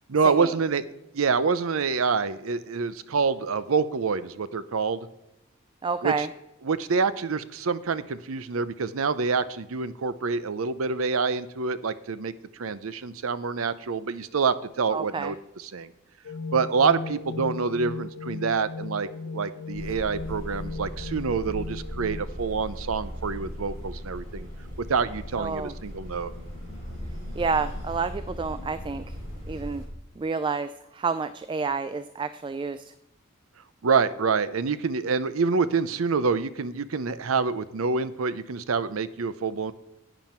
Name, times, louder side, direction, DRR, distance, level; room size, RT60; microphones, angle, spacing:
voice 1, 0.1-0.9 1.1-5.1 6.0-6.3 6.6-15.9 16.5-24.5 24.8-26.3 33.8-39.7, right 5 dB, 85° right, 15 dB, 0.6 m, -27 dB
voice 2, 5.8-6.3 14.9-15.3 25.4-25.7 27.3-29.2 29.5-29.8 30.2-32.9, right 4 dB, 25° right, 13 dB, 0.3 m, -29 dB
sound 1, 16.2-22.2, left 3 dB, 80° left, 0.5 m, -37 dB
sound 2, 19.7-29.8, equal, 40° right, 4.5 m, -38 dB
11.5 x 9.1 x 4.4 m, 0.89 s
head